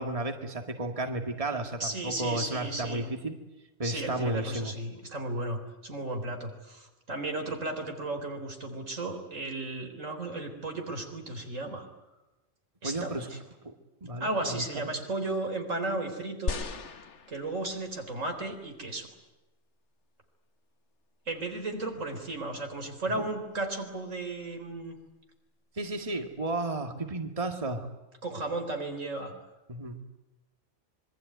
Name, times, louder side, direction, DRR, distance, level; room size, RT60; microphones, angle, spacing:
voice 1, 0.0-3.4 3.8-4.7 12.8-13.3 14.0-14.9 22.0-22.1 23.2-23.3 25.8-27.9 29.7-30.0, right 2 dB, 25° right, 5 dB, 2.0 m, -33 dB
voice 2, 1.8-3.1 3.8-11.9 12.8-13.4 14.2-16.6 17.3-19.1 21.3-24.9 28.2-29.3, right 2 dB, 80° right, 5 dB, 4.3 m, -34 dB
sound 1, 16.5-18.0 18.7-18.8, left 4 dB, 65° left, 1.7 m, -36 dB
26.0 x 23.0 x 9.5 m, 1.0 s
omnidirectional pair, 1.3 m